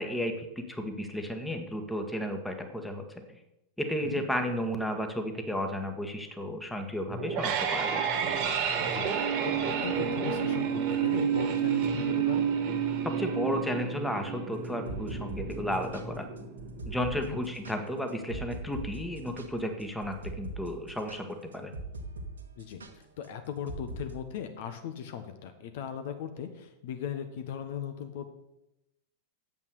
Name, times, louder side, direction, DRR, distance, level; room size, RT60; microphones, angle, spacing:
voice 1, 0.0-3.4 3.8-8.1 13.0-16.3 16.9-21.7, equal, 5° left, 6 dB, 1.5 m, -33 dB
sound 1, 7.1-18.1, right 7 dB, 40° right, 1.6 m, -30 dB
voice 2, 8.8-12.5 17.1-17.4 22.6-28.3, left 8 dB, 55° left, 8 dB, 1.1 m, -38 dB
sound 2, 14.6-22.3 22.6-22.9 23.7-24.0, right 2 dB, 70° right, 1.4 m, -41 dB
9.0 x 8.0 x 6.6 m, 0.90 s
figure-of-eight pair, 90°, 0 cm